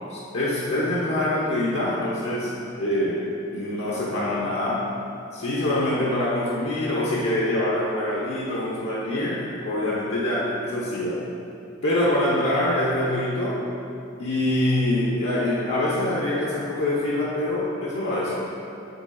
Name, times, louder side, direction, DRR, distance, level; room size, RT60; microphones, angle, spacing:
voice 1, 0.1-4.9 5.3-11.3 11.8-13.7 14.2-18.5, left 1 dB, 70° left, -6 dB, 1.1 m, -25 dB
7.5 x 7.0 x 3.9 m, 2.7 s
head